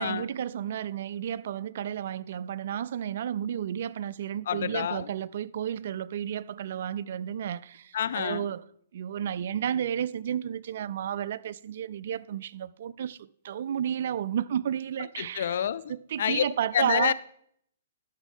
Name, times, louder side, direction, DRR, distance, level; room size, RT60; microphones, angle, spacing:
voice 1, 0.0-8.6 8.9-15.5 15.9-17.1, right 9 dB, 60° right, 0.3 m, -32 dB
voice 2, 4.5-5.1 7.9-8.5 15.2-15.8 16.2-16.4 16.7-17.1, left 9 dB, 65° left, 0.4 m, -27 dB
12.0 x 6.0 x 3.6 m
hypercardioid pair, 135°, 0 cm